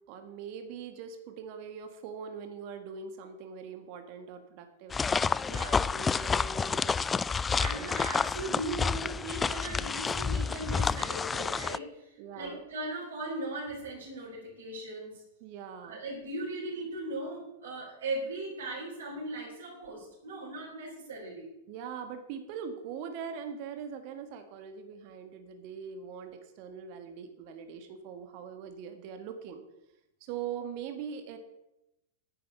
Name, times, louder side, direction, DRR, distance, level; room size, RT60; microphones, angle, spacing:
voice 1, 0.1-5.3 5.7-7.0 7.5-7.9 12.2-12.6 15.4-16.0 21.7-29.6 30.2-31.4, right 7 dB, 50° right, 7 dB, 1.6 m, -42 dB
sound 1, 4.9-11.8, left 5 dB, 15° left, 0.3 m, -29 dB
voice 2, 5.4-5.9 7.6-15.2 15.8-21.5, right 2 dB, 75° right, -5 dB, 4.1 m, -38 dB
10.0 x 8.5 x 6.8 m, 0.89 s
figure-of-eight pair, 95°, 0 cm